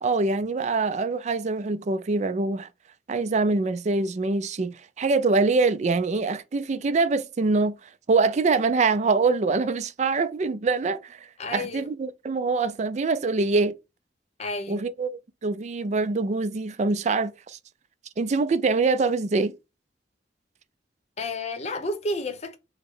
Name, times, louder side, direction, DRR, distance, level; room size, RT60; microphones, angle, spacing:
voice 1, 0.0-2.7 3.1-7.8 8.1-11.2 11.5-13.8 14.7-17.6 18.2-19.5, right 3 dB, 40° right, 0.4 m, -24 dB
voice 2, 11.4-11.9 14.4-14.9 21.2-22.6, left 2 dB, 35° left, 0.8 m, -31 dB
4.8 x 2.1 x 4.7 m
head